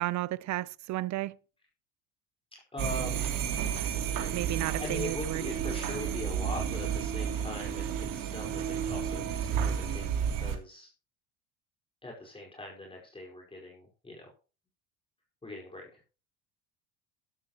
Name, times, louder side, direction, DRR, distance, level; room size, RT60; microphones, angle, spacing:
voice 1, 0.0-1.4 4.3-5.4, right 16 dB, 50° right, 0.8 m, -33 dB
voice 2, 2.5-3.5 4.8-10.9 12.0-14.3 15.4-16.0, left 1 dB, 15° left, 4.9 m, -41 dB
sound 1, 2.8-10.6, right 8 dB, 65° right, 3.1 m, -32 dB
13.0 x 12.5 x 3.1 m
supercardioid pair, 110°, 36 cm